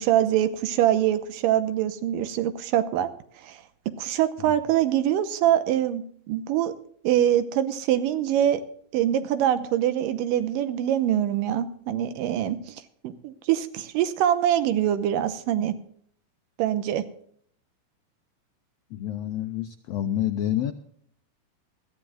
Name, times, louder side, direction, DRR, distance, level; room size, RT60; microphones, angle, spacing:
voice 1, 0.0-3.1 3.4-3.6 4.0-6.7 7.0-8.6 8.9-15.7 16.6-17.0, right 11 dB, 90° right, 10 dB, 2.5 m, -24 dB
voice 2, 18.9-20.7, left 11 dB, 85° left, 6 dB, 1.4 m, -28 dB
21.5 x 14.0 x 2.3 m, 0.63 s
omnidirectional pair, 3.9 m